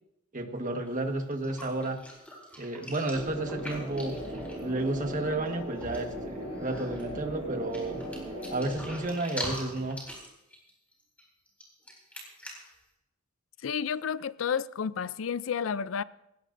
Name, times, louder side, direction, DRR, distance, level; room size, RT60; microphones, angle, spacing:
voice 1, 0.3-2.0 2.6-8.0 8.5-10.0, right 2 dB, 40° right, 1.5 m, -32 dB
sound 1, 0.9-1.0 1.3-5.1 5.5-5.6 5.7-6.2 6.5-7.1 7.7-12.7, equal, 5° left, 4.0 m, -43 dB
sound 2, 3.1-9.0, equal, 20° right, 6.2 m, -38 dB
voice 2, 13.6-16.0, left 7 dB, 85° left, 0.4 m, -31 dB
20.0 x 17.0 x 2.6 m
head